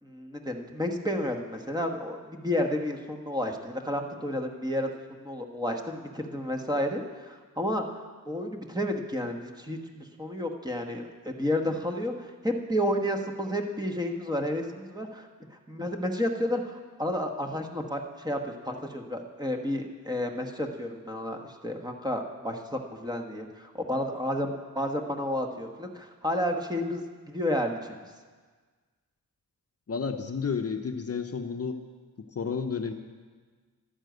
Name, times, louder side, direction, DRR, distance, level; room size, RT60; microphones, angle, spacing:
voice 1, 0.0-28.1, left 1 dB, 10° right, 3 dB, 1.1 m, -31 dB
voice 2, 29.9-31.8 32.2-32.9, left 5 dB, 45° left, 5 dB, 0.7 m, -31 dB
12.0 x 10.0 x 7.9 m, 1.5 s
wide cardioid pair, 135°, 36 cm